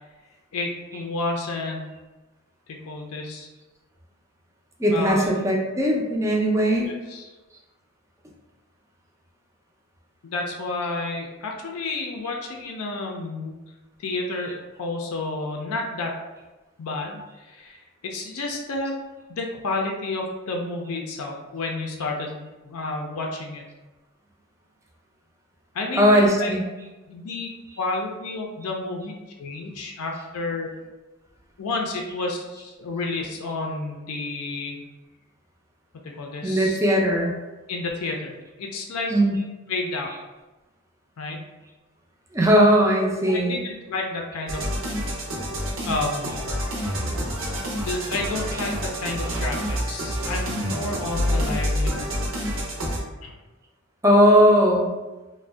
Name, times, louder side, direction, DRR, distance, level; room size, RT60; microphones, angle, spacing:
voice 1, 0.5-1.9 2.7-3.5 4.9-5.3 6.8-7.3 10.2-13.6 14.0-16.1 16.8-19.0 19.3-23.6 25.7-26.5 27.1-27.5 27.8-29.1 29.4-30.7 31.6-34.8 35.9-36.8 37.1-37.2 37.7-39.1 39.7-40.1 41.2-41.4 43.1-44.7 45.8-46.4 47.8-52.1 52.5-52.6 53.2-53.3, left 2 dB, 80° left, 1 dB, 0.4 m, -30 dB
voice 2, 4.8-6.9 26.0-26.6 36.4-37.3 39.1-39.3 42.3-43.6 54.0-54.9, equal, 15° right, -1 dB, 0.4 m, -19 dB
sound 1, 44.5-53.0, equal, 60° right, 0.6 m, -28 dB
2.5 x 2.1 x 3.3 m, 1.1 s
head